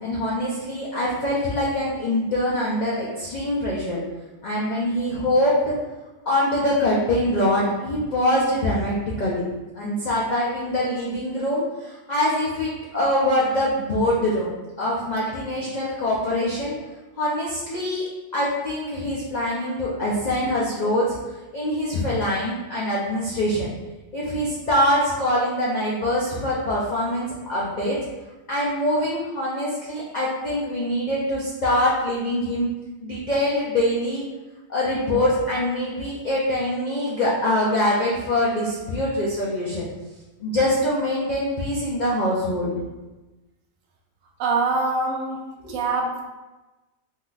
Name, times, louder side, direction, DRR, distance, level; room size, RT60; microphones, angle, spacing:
voice 1, 0.0-4.0 4.4-5.8 6.3-9.4 9.7-14.5 14.8-16.7 17.2-21.2 21.5-23.7 24.1-28.0 28.5-32.7 33.0-34.2 34.7-39.8 40.4-42.7 45.6-45.7, left 1 dB, 75° left, -6 dB, 0.4 m, -24 dB
voice 2, 44.4-45.4 45.7-46.2, right 3 dB, 75° right, 0 dB, 1.0 m, -24 dB
3.6 x 2.6 x 2.3 m, 1.1 s
omnidirectional pair, 1.4 m